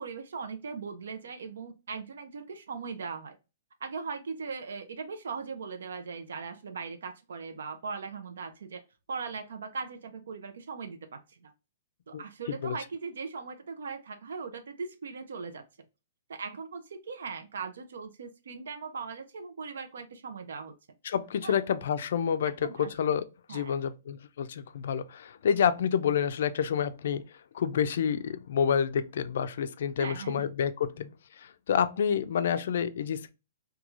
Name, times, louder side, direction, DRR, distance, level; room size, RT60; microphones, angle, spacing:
voice 1, 0.0-3.4 3.8-8.8 9.1-11.5 12.1-15.6 16.3-20.7 21.4-21.5 22.6-22.9 23.5-23.8 30.0-30.5, right 5 dB, 90° right, 0.4 m, -39 dB
voice 2, 21.0-27.2 27.5-31.1 31.4-33.3, left 8 dB, 60° left, 0.3 m, -28 dB
3.0 x 2.3 x 2.4 m
hypercardioid pair, 170°, 0 cm